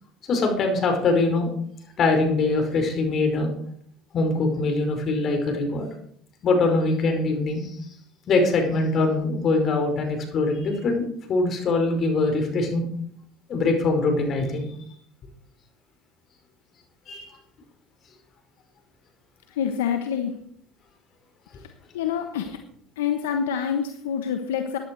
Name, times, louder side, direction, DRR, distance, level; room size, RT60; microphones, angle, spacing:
voice 1, 0.3-1.5 2.0-3.5 4.1-5.9 6.4-7.8 8.3-12.8 13.5-14.6 17.1-17.4, left 3 dB, 45° left, 4 dB, 5.0 m, -23 dB
voice 2, 19.5-20.4 21.5-21.7 21.9-22.6 23.0-24.8, left 8 dB, 85° left, 6 dB, 1.2 m, -27 dB
15.5 x 10.5 x 4.7 m, 0.64 s
hypercardioid pair, 80°, 0 cm